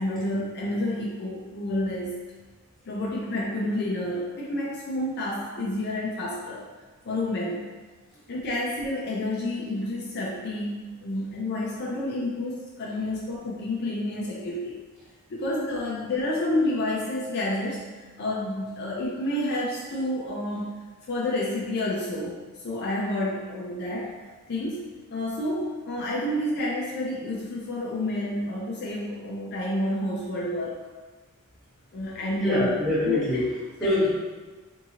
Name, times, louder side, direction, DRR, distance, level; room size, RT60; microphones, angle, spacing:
voice 1, 0.0-2.2 2.9-6.7 7.0-7.7 8.3-14.8 15.3-20.7 21.1-22.4 22.6-24.1 24.5-30.8 31.9-32.7 33.1-33.2 33.8-34.0, left 1 dB, 50° left, -5 dB, 0.5 m, -29 dB
voice 2, 32.3-34.1, left 1 dB, ahead, -11 dB, 1.2 m, -25 dB
3.6 x 2.7 x 2.8 m, 1.3 s
head